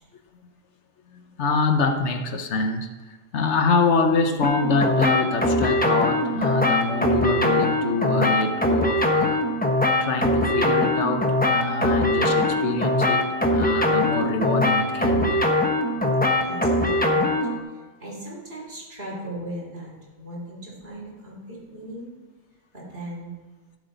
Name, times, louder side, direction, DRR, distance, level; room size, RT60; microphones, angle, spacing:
voice 1, 1.1-2.9 3.3-9.4 10.0-15.4, left 4 dB, 70° left, 6 dB, 1.1 m, -25 dB
sound 1, 4.4-17.6, left 1 dB, 10° left, 1.0 m, -22 dB
voice 2, 16.4-17.4 17.7-22.1 22.7-23.3, right 1 dB, 55° right, -4 dB, 3.8 m, -38 dB
16.0 x 7.8 x 4.1 m, 1.3 s
omnidirectional pair, 1.2 m